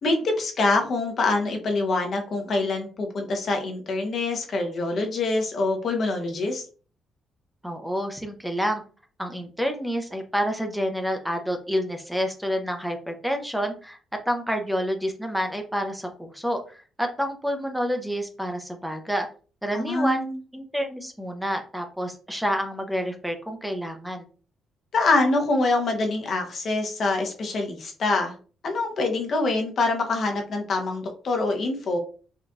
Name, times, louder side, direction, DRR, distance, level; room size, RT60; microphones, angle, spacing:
voice 1, 0.0-6.6 19.7-20.4 24.9-28.3 28.6-32.0, left 3 dB, 55° left, 3 dB, 0.8 m, -25 dB
voice 2, 7.6-8.8 9.2-14.0 14.3-19.3 19.6-20.3 20.5-24.3, equal, 5° right, 4 dB, 0.5 m, -28 dB
3.8 x 2.5 x 2.3 m, 0.39 s
cardioid pair, 90°, 0 cm